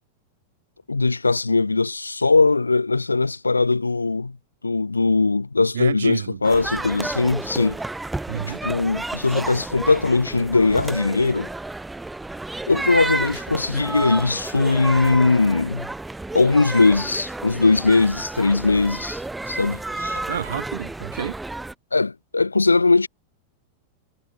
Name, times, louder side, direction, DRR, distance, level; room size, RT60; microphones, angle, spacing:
voice 1, 0.9-4.4 4.6-7.8 8.6-11.5 12.7-15.9 16.3-19.2 19.5-20.2 21.9-23.1, left 3 dB, 80° left, 2.0 m, -20 dB
voice 2, 5.7-6.4 8.3-8.6 20.3-21.4, right 9 dB, 65° right, 3.7 m, -29 dB
sound 1, 6.4-21.7, right 2 dB, 5° right, 4.6 m, -31 dB
figure-of-eight pair, 90°, 0 cm